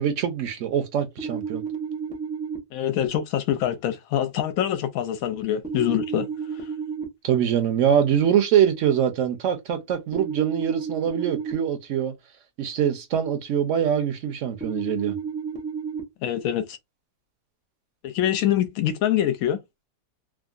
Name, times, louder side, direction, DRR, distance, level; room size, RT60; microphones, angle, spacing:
voice 1, 0.0-1.6 7.2-12.1 12.6-15.2, right 9 dB, 70° right, 0.9 m, -23 dB
sound 1, 1.2-2.6 5.6-7.0 10.1-11.5 14.6-16.0, right 6 dB, 10° right, 0.3 m, -31 dB
voice 2, 2.7-6.3 16.2-16.8 18.0-19.6, left 11 dB, 80° left, 1.0 m, -25 dB
3.5 x 2.0 x 2.3 m
omnidirectional pair, 1.5 m